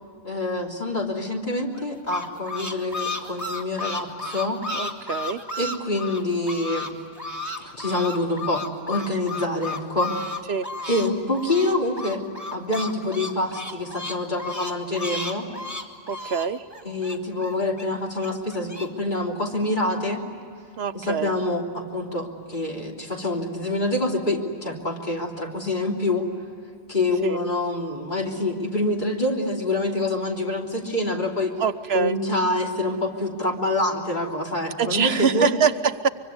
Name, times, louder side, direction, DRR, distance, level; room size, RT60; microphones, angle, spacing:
voice 1, 0.2-4.6 5.6-6.9 7.6-10.2 10.9-12.2 12.5-15.5 16.8-20.2 20.9-26.3 26.9-31.5 31.9-35.5, left 2 dB, 45° left, -1 dB, 3.5 m, -26 dB
sound 1, 1.7-6.9 7.2-11.1 11.3-17.8 18.2-18.9, left 3 dB, 15° left, 2.3 m, -33 dB
voice 2, 4.7-5.4 10.5-10.7 16.1-16.6 20.8-21.3 27.2-27.4 31.6-32.2 34.8-35.7 36.0-36.1, right 6 dB, 70° right, 11 dB, 1.1 m, -24 dB
25.0 x 24.5 x 9.6 m, 2.4 s
omnidirectional pair, 1.1 m